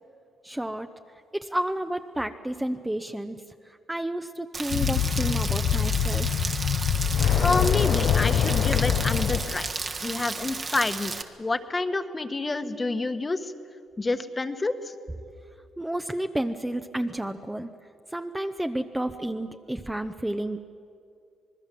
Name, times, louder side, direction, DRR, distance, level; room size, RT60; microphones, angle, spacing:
voice 1, 0.4-0.9 1.3-3.4 3.9-6.4 15.8-17.7 18.1-20.6, right 1 dB, 10° right, 7 dB, 0.8 m, -31 dB
Rain, 4.5-11.2, right 4 dB, 40° right, 1.5 m, -33 dB
Alien Abduction Chase, 4.7-9.7, left 8 dB, 65° left, 0.8 m, -24 dB
voice 2, 7.4-9.7 10.0-13.5 14.0-14.9, left 3 dB, 25° left, 9 dB, 1.3 m, -28 dB
26.0 x 20.0 x 7.6 m, 2.5 s
cardioid pair, 90°, 0 cm